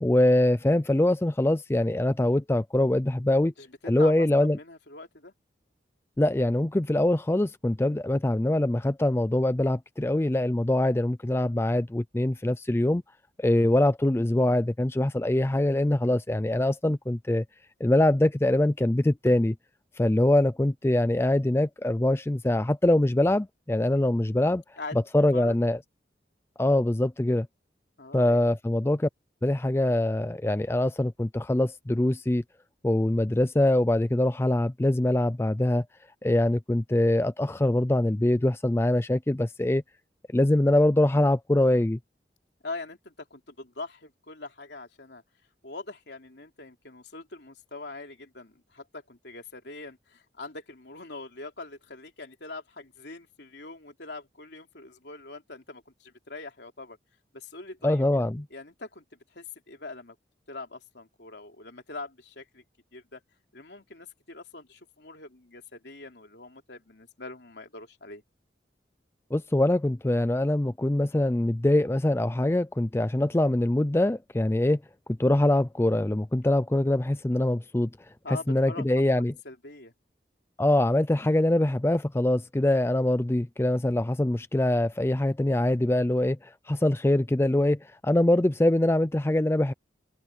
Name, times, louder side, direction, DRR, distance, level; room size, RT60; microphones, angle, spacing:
voice 1, 0.0-3.5 3.9-4.6 6.2-13.0 13.4-17.4 17.8-19.5 20.0-24.6 25.1-25.8 26.6-27.5 28.1-29.1 29.4-32.4 32.8-35.8 36.2-39.8 40.3-42.0 57.8-58.5 69.3-74.8 75.2-77.9 78.3-79.3 80.6-89.7, left 1 dB, 15° left, 0.4 m, -23 dB
voice 2, 3.6-5.3 24.8-25.0 25.3-25.6 28.0-28.4 42.6-45.2 45.6-57.0 57.3-58.2 58.5-60.1 60.5-62.6 62.9-63.2 63.5-68.2 78.2-78.9 79.2-79.9, left 3 dB, 70° left, 3.3 m, -43 dB
head